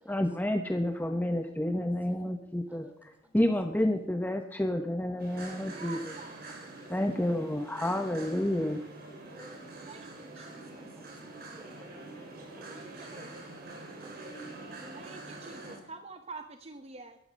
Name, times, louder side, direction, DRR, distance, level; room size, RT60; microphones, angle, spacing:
voice 1, 0.1-6.0 6.9-8.8, left 1 dB, 10° left, 5 dB, 0.8 m, -30 dB
voice 2, 2.7-3.1 6.8-6.9 8.2-8.3 9.3-13.4 13.8-15.0, right 1 dB, 10° right, 5 dB, 2.8 m, -54 dB
sound 1, 5.2-15.8, right 2 dB, 55° right, 4.5 m, -45 dB
voice 3, 5.7-6.5 9.9-10.8 12.4-13.3 14.9-17.2, right 3 dB, 35° right, 7 dB, 0.8 m, -47 dB
18.5 x 13.5 x 5.2 m, 0.82 s
head